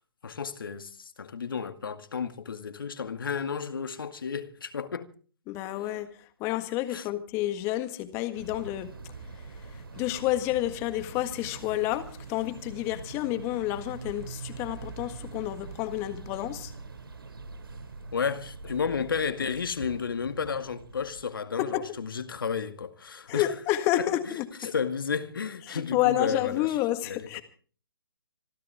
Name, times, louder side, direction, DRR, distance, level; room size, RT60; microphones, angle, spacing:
voice 1, 0.2-5.1 6.9-7.1 18.1-23.5 24.0-24.1 24.6-26.8 27.1-27.3, left 6 dB, 65° left, 2.1 m, -32 dB
voice 2, 5.5-6.1 6.4-8.9 9.7-16.7 21.6-21.8 23.3-24.7 25.7-27.4, left 14 dB, 20° left, 1.6 m, -29 dB
sound 1, 8.3-21.2, right 4 dB, 75° right, 2.8 m, -43 dB
26.0 x 14.0 x 3.6 m
figure-of-eight pair, 145°, 12 cm